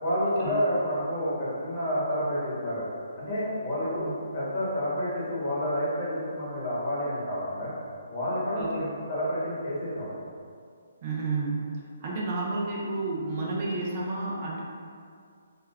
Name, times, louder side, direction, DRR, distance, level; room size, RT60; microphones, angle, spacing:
voice 1, 0.0-2.9 3.2-4.1 4.3-7.7 8.1-10.1, equal, 35° left, -9 dB, 1.0 m, -29 dB
voice 2, 8.5-8.9 11.0-11.6 12.0-14.6, right 3 dB, 35° right, -4 dB, 0.4 m, -31 dB
2.3 x 2.1 x 3.3 m, 2.2 s
hypercardioid pair, 160°, 0 cm